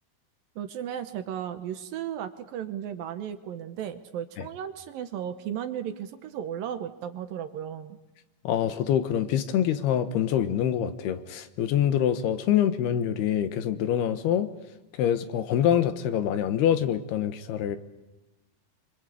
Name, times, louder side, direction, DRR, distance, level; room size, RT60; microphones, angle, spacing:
voice 1, 0.6-8.0, right 9 dB, 70° right, 9 dB, 2.6 m, -35 dB
voice 2, 8.4-14.5 15.0-17.8, left 10 dB, 75° left, 11 dB, 3.2 m, -25 dB
25.5 x 25.5 x 8.4 m, 1.0 s
omnidirectional pair, 4.7 m